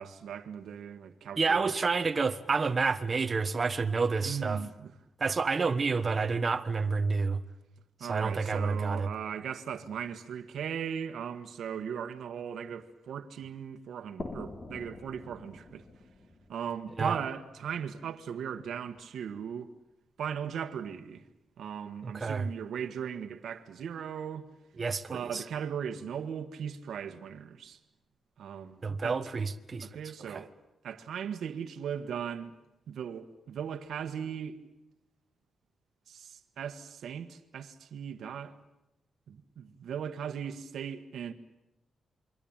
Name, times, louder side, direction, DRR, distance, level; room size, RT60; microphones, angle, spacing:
voice 1, 0.0-1.7 4.2-4.9 8.0-15.8 16.5-19.7 20.2-21.2 21.6-24.5 25.1-27.8 28.4-29.2 29.8-30.5 30.8-32.5 32.9-34.6 36.1-38.6 39.3-41.3, right 8 dB, 80° right, 1.5 m, -38 dB
voice 2, 1.4-4.6 5.2-7.4 8.0-9.1 17.0-17.2 22.0-22.5 24.8-25.4 28.8-29.9 30.2-30.4, right 4 dB, 35° right, 1.2 m, -29 dB
sound 1, 14.2-17.7, left 2 dB, 30° left, 3.0 m, -45 dB
28.5 x 23.0 x 8.9 m
wide cardioid pair, 125°, 0 cm